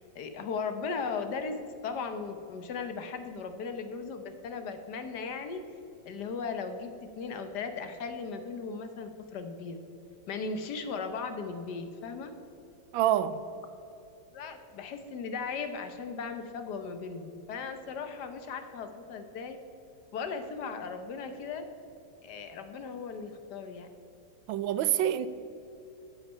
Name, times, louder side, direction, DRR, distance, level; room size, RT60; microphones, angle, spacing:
voice 1, 0.0-5.6 6.1-9.8 10.3-12.3 14.3-19.6 20.1-21.6 22.2-23.9, left 5 dB, 65° left, 1.4 m, -37 dB
voice 2, 12.9-13.4 24.5-25.3, right 11 dB, 90° right, 1.4 m, -26 dB
13.0 x 8.3 x 5.5 m
omnidirectional pair, 2.1 m